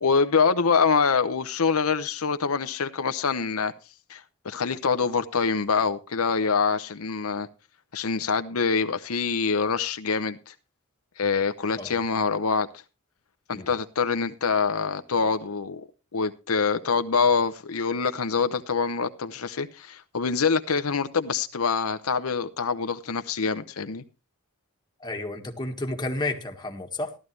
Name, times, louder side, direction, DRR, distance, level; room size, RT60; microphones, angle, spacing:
voice 1, 0.0-3.7 4.1-7.5 7.9-10.5 11.2-12.7 13.5-15.8 16.1-24.0, left 5 dB, 75° left, 0.8 m, -25 dB
voice 2, 25.0-27.2, left 2 dB, 20° left, 1.8 m, -31 dB
14.5 x 12.5 x 3.3 m
head